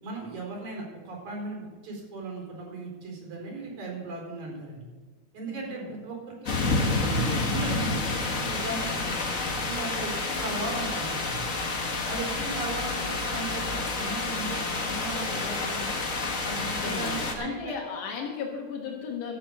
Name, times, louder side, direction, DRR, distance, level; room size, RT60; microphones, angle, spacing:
voice 1, 0.0-4.8 5.3-6.7 7.1-9.3 9.6-11.4 12.1-15.9 16.4-17.7, right 3 dB, 75° right, -1 dB, 5.7 m, -37 dB
voice 2, 5.5-5.9 16.6-19.4, left 6 dB, 90° left, 1 dB, 2.9 m, -36 dB
sound 1, 6.5-17.3, left 3 dB, 40° left, 1.2 m, -29 dB
12.0 x 8.6 x 6.8 m, 1.3 s
omnidirectional pair, 3.5 m